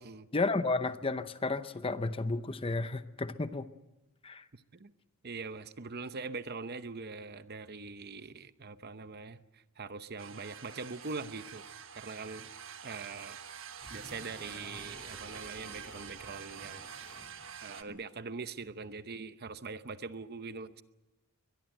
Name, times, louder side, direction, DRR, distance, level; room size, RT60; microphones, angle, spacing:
voice 1, 0.3-3.7 4.2-4.5, left 3 dB, 25° left, 12 dB, 0.8 m, -32 dB
voice 2, 4.5-4.9 5.2-11.6 11.9-12.5 12.8-13.4 13.9-16.8 17.6-20.8, right 4 dB, 45° right, 12 dB, 0.8 m, -42 dB
sound 1, 10.2-17.8, right 8 dB, 60° right, 1.3 m, -47 dB
sound 2, 13.8-17.6, equal, 5° left, 6.0 m, -53 dB
22.0 x 21.5 x 7.8 m, 1.0 s
head